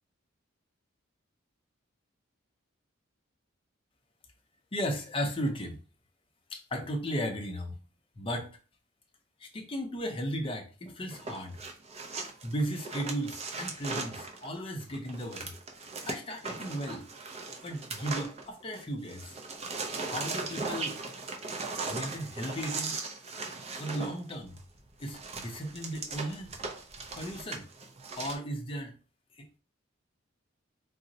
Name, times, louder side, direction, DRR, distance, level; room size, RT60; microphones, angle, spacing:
voice 1, 4.7-5.8 6.5-7.8 8.2-8.6 9.4-11.6 12.2-15.5 16.0-17.1 17.6-19.4 20.0-21.0 21.7-23.0 23.7-24.6 25.0-26.5 27.1-27.7 28.1-28.9 29.3-29.6, equal, 25° left, 3 dB, 0.5 m, -36 dB
sound 1, 11.1-18.8 19.1-28.4, right 3 dB, 30° right, 0.4 m, -38 dB
3.8 x 2.0 x 2.6 m, 0.36 s
head